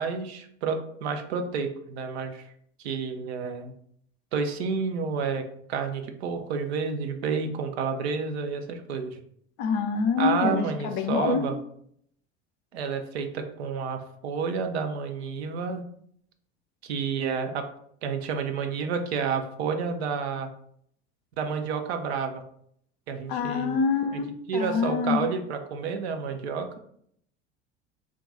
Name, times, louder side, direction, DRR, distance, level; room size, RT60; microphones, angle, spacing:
voice 1, 0.0-2.5 2.8-3.7 4.3-5.4 5.7-9.2 10.2-11.6 12.7-15.8 16.8-17.7 18.0-20.5 21.4-22.4 23.1-23.8 24.1-24.2 24.5-26.7, right 5 dB, 70° right, 6 dB, 0.5 m, -30 dB
voice 2, 9.6-11.4 23.3-25.2, left 5 dB, 50° left, 6 dB, 0.5 m, -26 dB
2.4 x 2.2 x 3.9 m, 0.67 s
figure-of-eight pair, 70°, 33 cm